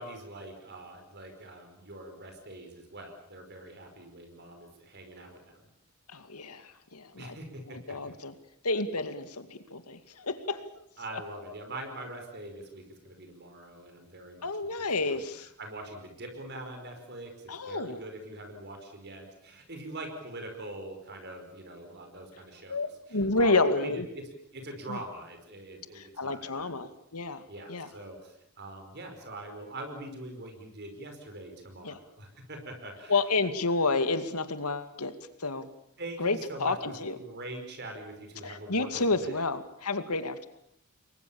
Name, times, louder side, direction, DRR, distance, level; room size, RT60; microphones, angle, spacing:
voice 1, 0.0-5.6 7.2-7.8 11.0-14.5 14.8-17.3 17.6-26.7 27.5-33.2 36.0-39.4, right 1 dB, 50° right, 5 dB, 5.1 m, -43 dB
voice 2, 6.1-6.6 6.9-7.3 7.7-8.3 8.6-10.7 14.4-15.5 17.5-18.0 22.7-24.1 24.9-25.0 26.0-27.4 27.7-27.9 31.8-32.0 33.1-35.1 35.4-35.7 36.2-37.2 38.4-40.5, left 3 dB, 90° left, 10 dB, 2.3 m, -30 dB
28.5 x 22.0 x 7.1 m, 0.73 s
head